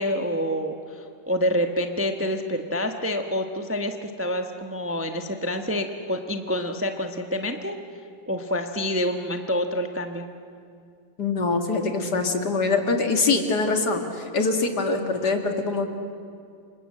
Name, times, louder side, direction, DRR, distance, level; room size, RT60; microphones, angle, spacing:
voice 1, 0.0-7.7 8.3-10.2, equal, 10° right, 5 dB, 1.0 m, -27 dB
voice 2, 11.2-16.0, left 3 dB, 55° left, 5 dB, 2.6 m, -24 dB
29.0 x 26.0 x 7.8 m, 2.3 s
omnidirectional pair, 2.1 m